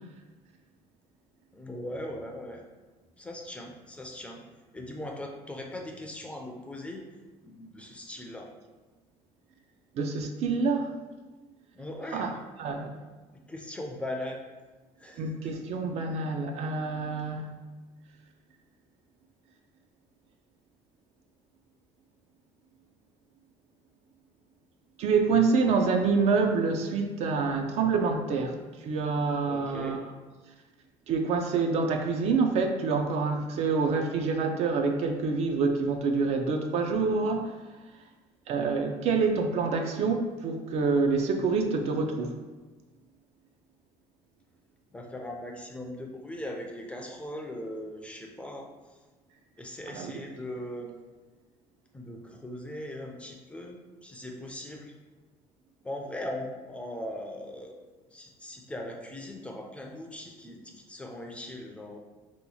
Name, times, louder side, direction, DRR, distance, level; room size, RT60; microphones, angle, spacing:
voice 1, 1.5-2.6 3.2-4.4 4.7-7.0 7.4-8.5 11.7-12.3 13.5-14.4 15.0-15.5 29.5-30.0 44.9-49.0 49.6-51.0 51.9-54.9 55.8-57.7 58.1-62.0, left 1 dB, 10° left, 1 dB, 0.4 m, -39 dB
voice 2, 10.0-10.9 12.1-12.3 12.6-12.9 15.2-17.5 25.0-28.6 28.8-30.0 31.1-37.5 38.5-42.4 49.9-50.1, right 4 dB, 55° right, 4 dB, 0.4 m, -27 dB
2.9 x 2.3 x 4.1 m, 1.2 s
cardioid pair, 135°, 13 cm